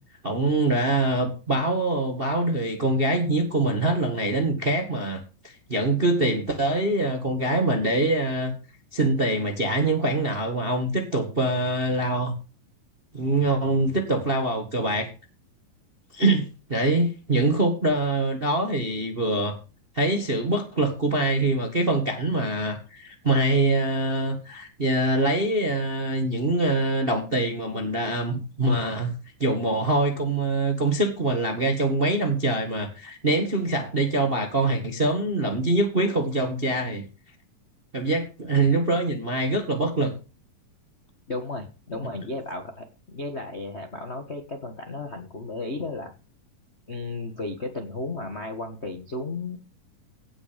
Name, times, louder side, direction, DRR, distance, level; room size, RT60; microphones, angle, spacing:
voice 1, 0.2-8.5 8.9-12.3 13.1-15.1 16.1-19.6 19.9-29.1 29.4-37.0 37.9-40.1, right 2 dB, 35° right, 5 dB, 0.9 m, -24 dB
voice 2, 41.3-46.1 46.9-49.6, left 2 dB, 50° left, 4 dB, 0.7 m, -34 dB
17.5 x 6.0 x 5.1 m, 0.32 s
omnidirectional pair, 3.9 m